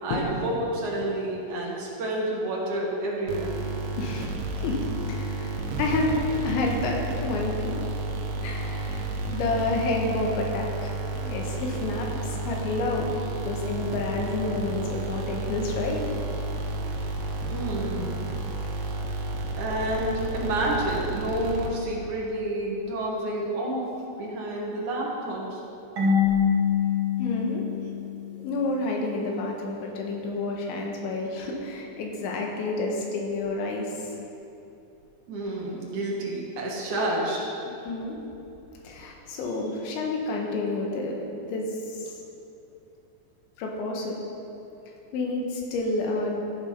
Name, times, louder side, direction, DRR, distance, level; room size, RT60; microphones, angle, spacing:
voice 1, 0.0-3.5 17.5-18.1 19.6-23.8 24.2-25.6 35.3-37.5, right 1 dB, 60° right, -3 dB, 2.3 m, -29 dB
sound 1, 3.3-22.1, right 2 dB, 75° right, 3.3 m, -32 dB
voice 2, 4.0-7.9 8.4-10.9 11.2-13.1 13.4-16.0 27.2-27.7 28.3-34.1 37.9-38.2 38.8-41.2 41.5-42.1 43.6-44.2 45.1-46.4, left 2 dB, 80° left, 0 dB, 3.5 m, -29 dB
Marimba xylophone / Wood, 26.0-28.7, left 7 dB, 40° right, 1.9 m, -25 dB
14.5 x 6.9 x 5.8 m, 2.8 s
omnidirectional pair, 5.3 m